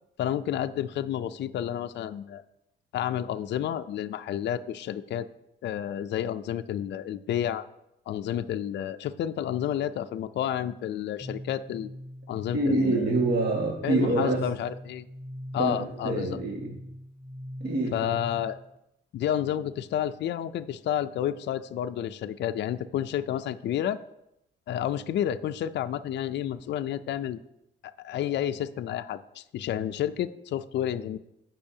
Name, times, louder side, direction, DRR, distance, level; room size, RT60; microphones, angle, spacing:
voice 1, 0.2-2.4 2.9-5.3 5.6-7.7 8.1-11.9 12.3-13.1 13.8-15.1 15.5-16.4 17.9-18.6 19.1-24.0 24.7-27.4 27.8-31.2, left 10 dB, 60° left, 10 dB, 0.4 m, -30 dB
sound 1, 11.2-18.8, equal, 10° left, 1.1 m, -42 dB
voice 2, 12.5-14.4 15.6-15.8 16.0-16.7 17.6-18.1, right 2 dB, 55° right, -1 dB, 1.7 m, -26 dB
15.5 x 5.6 x 2.8 m, 0.83 s
cardioid pair, 90°, 20 cm